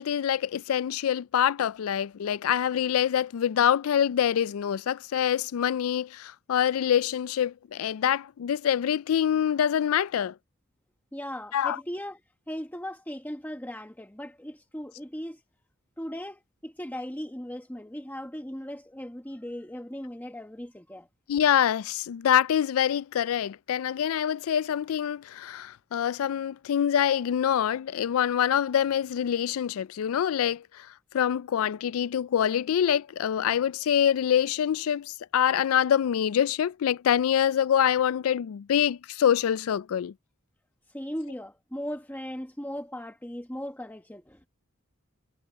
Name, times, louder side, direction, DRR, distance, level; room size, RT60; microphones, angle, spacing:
voice 1, 0.0-10.3 11.5-11.8 21.3-30.6 31.1-40.1, left 9 dB, 75° left, 0.3 m, -25 dB
voice 2, 11.1-12.2 12.5-15.4 16.0-21.1 40.9-44.5, equal, 10° left, 1.2 m, -38 dB
head